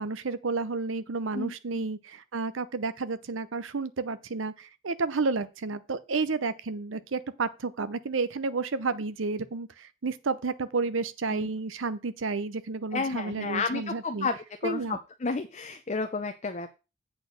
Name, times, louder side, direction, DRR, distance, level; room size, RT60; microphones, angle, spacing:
voice 1, 0.0-14.3 14.6-15.0, right 4 dB, 70° right, 0.7 m, -31 dB
voice 2, 1.3-1.8 11.3-11.5 12.9-16.8, left 4 dB, 35° left, 0.6 m, -32 dB
8.2 x 4.4 x 6.4 m
head